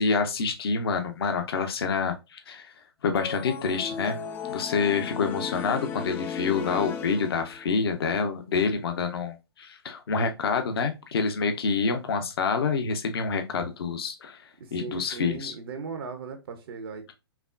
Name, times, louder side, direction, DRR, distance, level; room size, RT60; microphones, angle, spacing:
voice 1, 0.0-2.7 3.0-4.2 4.5-14.4 14.7-15.5, left 5 dB, 65° left, 0.7 m, -27 dB
sound 1, 3.2-7.8, left 7 dB, 15° left, 0.3 m, -35 dB
voice 2, 14.6-17.1, right 5 dB, 60° right, 0.7 m, -38 dB
5.7 x 2.1 x 2.4 m
figure-of-eight pair, 120°, 14 cm